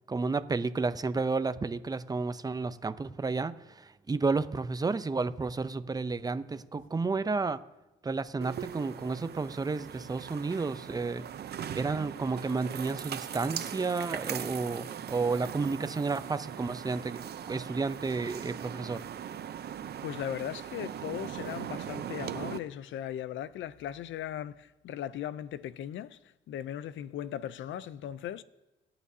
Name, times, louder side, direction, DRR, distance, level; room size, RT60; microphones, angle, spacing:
voice 1, 0.1-7.6 8.0-11.3 11.7-19.0, right 4 dB, 20° right, 0.6 m, -31 dB
sound 1, 8.4-22.6, right 9 dB, 55° right, 0.7 m, -40 dB
voice 2, 20.0-26.2 26.5-28.4, left 11 dB, 75° left, 0.6 m, -38 dB
26.0 x 8.8 x 2.8 m
cardioid pair, 90°, 20 cm